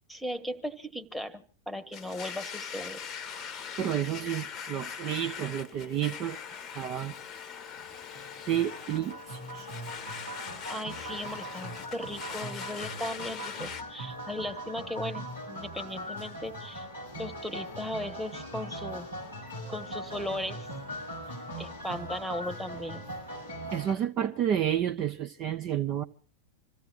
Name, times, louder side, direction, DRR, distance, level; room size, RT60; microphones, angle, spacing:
voice 1, 0.1-3.0 10.7-16.9 17.2-19.1 19.7-20.7 21.6-23.0, left 1 dB, ahead, 1.5 m, -37 dB
Domestic sounds home sounds, 1.9-13.8, left 7 dB, 30° left, 1.0 m, -41 dB
voice 2, 3.8-6.4 6.7-7.1 8.5-9.7 23.7-26.0, right 10 dB, 35° right, 1.0 m, -30 dB
sound 1, 7.7-23.9, right 1 dB, 90° right, 7.0 m, -40 dB
27.0 x 16.0 x 2.6 m
figure-of-eight pair, 90°, 0 cm